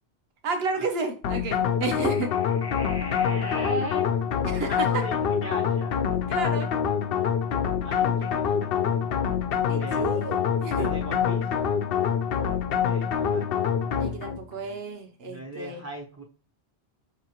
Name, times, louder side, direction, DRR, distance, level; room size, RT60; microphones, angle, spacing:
voice 1, 0.4-2.3 4.4-4.9 6.3-6.7 9.7-10.9 14.0-15.8, right 3 dB, 65° right, 6 dB, 1.1 m, -31 dB
sound 1, 1.2-14.4, left 7 dB, 65° left, 0.7 m, -26 dB
voice 2, 2.6-4.2 4.6-6.0 6.3-6.4 7.8-8.4 8.7-9.3 9.8-10.1 10.7-11.4 12.8-14.8 15.2-16.2, equal, 20° right, -2 dB, 0.5 m, -38 dB
5.4 x 2.9 x 2.9 m, 0.38 s
omnidirectional pair, 1.1 m